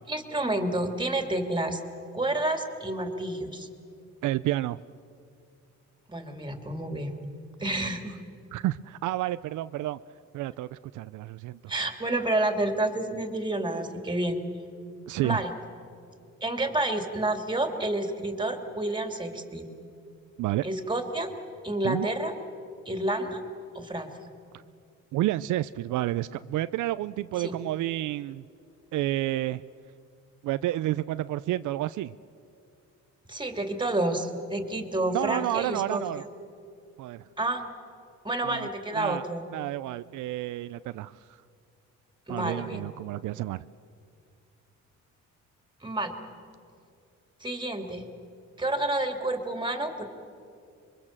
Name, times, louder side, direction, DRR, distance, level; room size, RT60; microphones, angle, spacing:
voice 1, 0.1-1.8 2.1-3.7 6.1-7.1 7.6-8.1 11.7-14.4 15.2-15.5 16.4-19.7 20.6-21.3 21.6-22.3 22.9-23.4 23.7-24.1 27.4-27.5 33.3-36.0 37.4-37.6 38.2-39.4 42.3-42.8 45.8-46.2 47.4-48.0 48.6-50.1, right 1 dB, 15° right, 5 dB, 2.8 m, -29 dB
voice 2, 4.2-4.8 8.5-10.0 10.3-11.7 15.1-15.4 20.4-20.6 21.8-22.1 25.1-28.4 28.9-29.6 30.4-32.1 35.1-36.2 37.0-37.2 38.4-38.7 38.9-39.2 39.5-41.1 42.3-43.6, right 15 dB, 80° right, 14 dB, 0.5 m, -30 dB
26.5 x 23.0 x 7.4 m, 2.5 s
cardioid pair, 90°, 30 cm